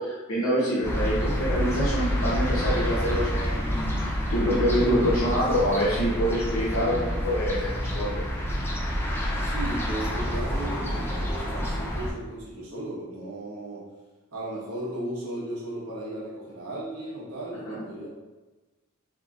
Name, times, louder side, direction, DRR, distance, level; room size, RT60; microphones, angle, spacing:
voice 1, 0.0-8.2 17.7-17.8, equal, 70° left, -9 dB, 0.8 m, -26 dB
sound 1, 0.8-12.1, equal, 10° left, 0.4 m, -28 dB
voice 2, 9.4-13.9 14.3-18.1, right 1 dB, 90° right, -5 dB, 1.1 m, -35 dB
3.7 x 2.9 x 2.4 m, 1.2 s
head